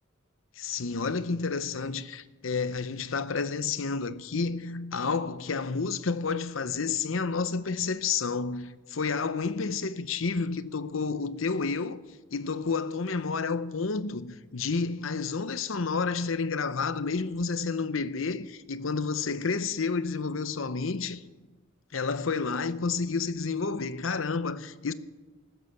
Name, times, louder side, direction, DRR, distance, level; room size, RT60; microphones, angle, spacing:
voice 1, 0.6-12.0 12.3-21.2 21.9-24.9, left 4 dB, 80° left, 0.8 m, -30 dB
15.5 x 12.5 x 7.1 m
head